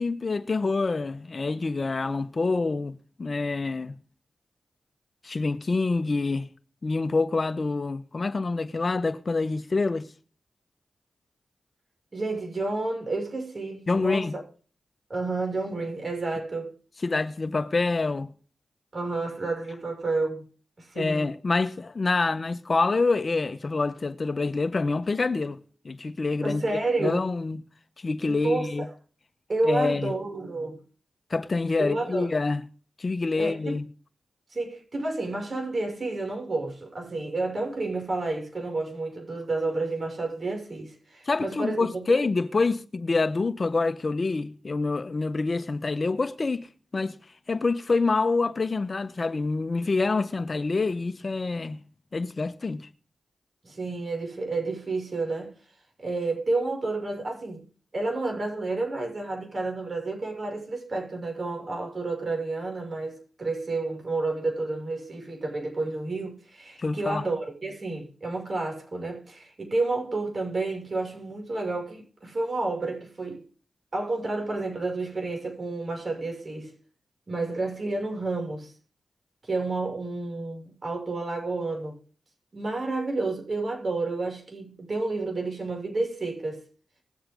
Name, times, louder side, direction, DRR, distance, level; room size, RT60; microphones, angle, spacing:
voice 1, 0.0-3.9 5.2-6.5 6.8-10.1 13.9-14.3 17.0-18.3 20.9-25.6 25.8-26.6 27.0-27.6 28.0-28.9 29.7-30.1 31.3-32.6 33.0-33.9 41.3-46.7 46.9-47.1 47.5-51.8 52.1-52.9 66.8-67.2, left 3 dB, 45° left, 1.4 m, -26 dB
voice 2, 12.1-14.4 15.1-16.7 18.9-20.4 20.8-21.3 26.4-27.2 28.3-28.9 29.5-30.8 31.8-32.3 33.4-33.8 34.5-42.2 53.6-55.5 56.0-57.6 57.9-73.4 73.9-76.7 77.3-78.7 79.5-82.0 82.5-86.6, right 2 dB, 50° right, 6.8 m, -30 dB
21.0 x 7.9 x 3.9 m
cardioid pair, 45°, 0 cm